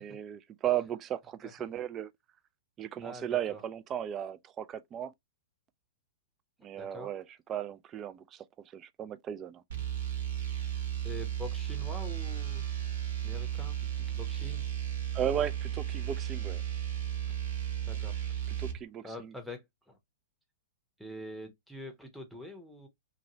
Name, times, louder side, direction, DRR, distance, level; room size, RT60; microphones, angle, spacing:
voice 1, 0.0-2.1 2.8-5.1 6.6-7.2 7.5-8.4 8.7-9.6 15.1-16.6 18.6-19.3, right 10 dB, 25° right, 0.3 m, -35 dB
voice 2, 3.0-3.6 6.7-7.1 11.0-12.7 13.2-14.7 17.9-18.5 19.0-20.0 21.0-22.9, left 1 dB, ahead, 0.9 m, -45 dB
sound 1, 9.7-18.8, right 10 dB, 65° right, 1.1 m, -34 dB
2.8 x 2.6 x 2.9 m
figure-of-eight pair, 105°, 0 cm